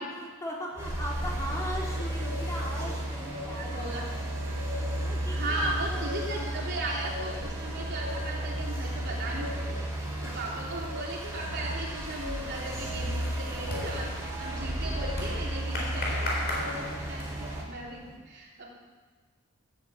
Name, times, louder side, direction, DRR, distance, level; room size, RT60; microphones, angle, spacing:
voice 1, 0.1-6.8 10.1-10.5, equal, 15° left, -4 dB, 3.0 m, -40 dB
sound 1, 0.7-18.2, left 3 dB, 85° right, 4.4 m, -45 dB
sound 2, 0.8-17.6, right 1 dB, 15° right, 3.0 m, -33 dB
voice 2, 3.6-4.1 5.3-18.8, right 2 dB, 55° right, -3 dB, 3.2 m, -37 dB
sound 3, 12.7-17.6, left 1 dB, 50° left, 3.8 m, -38 dB
13.5 x 8.9 x 8.2 m, 1.4 s
head